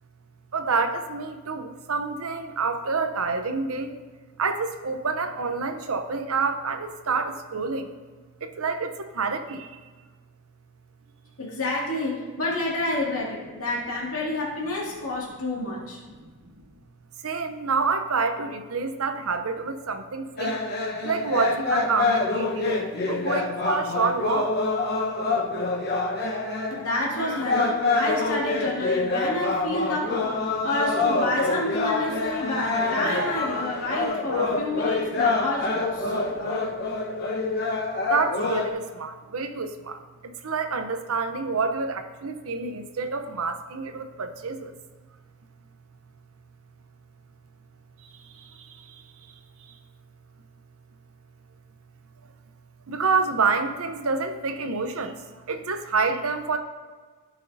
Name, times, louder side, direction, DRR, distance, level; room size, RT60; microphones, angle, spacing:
voice 1, 0.5-3.9 4.4-7.9 8.4-9.8 16.2-16.3 17.2-20.6 21.0-24.5 36.4-36.6 38.1-44.7 48.0-49.3 49.6-49.7 52.9-56.6, right 4 dB, 75° right, 7 dB, 0.8 m, -28 dB
voice 2, 11.4-16.0 26.7-36.7, left 2 dB, 75° left, -5 dB, 2.3 m, -29 dB
sound 1, 20.4-38.7, left 3 dB, 45° left, 1.1 m, -26 dB
15.5 x 6.3 x 2.7 m, 1.4 s
head